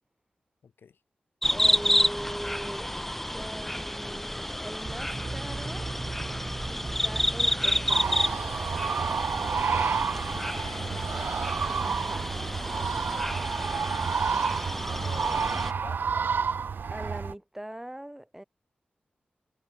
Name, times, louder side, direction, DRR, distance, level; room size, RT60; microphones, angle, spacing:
voice 1, 0.6-1.0 10.3-11.6 14.7-16.3, left 6 dB, 90° left, 6.0 m, -47 dB
sound 1, 1.4-15.7, equal, 5° left, 1.1 m, -30 dB
voice 2, 1.5-2.9 3.3-5.9 6.7-8.4 11.8-12.4 16.9-18.4, right 1 dB, 10° right, 1.5 m, -41 dB
sound 2, 4.8-9.5, right 3 dB, 50° right, 1.0 m, -39 dB
sound 3, 7.9-17.3, right 6 dB, 75° right, 0.4 m, -30 dB
cardioid pair, 55°, 3 cm